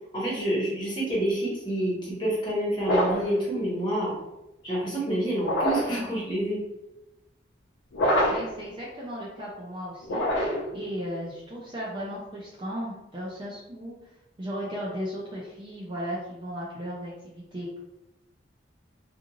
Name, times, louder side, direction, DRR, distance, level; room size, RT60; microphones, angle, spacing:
voice 1, 0.1-4.1 4.6-6.6, right 1 dB, 25° left, -7 dB, 1.0 m, -28 dB
sound 1, 2.8-3.4 5.4-6.0 7.9-8.6 10.0-10.8, equal, 75° left, 0.6 m, -25 dB
voice 2, 8.3-10.2 10.7-13.9 14.4-17.8, equal, 25° right, -5 dB, 0.4 m, -35 dB
2.5 x 2.5 x 2.9 m, 0.96 s
head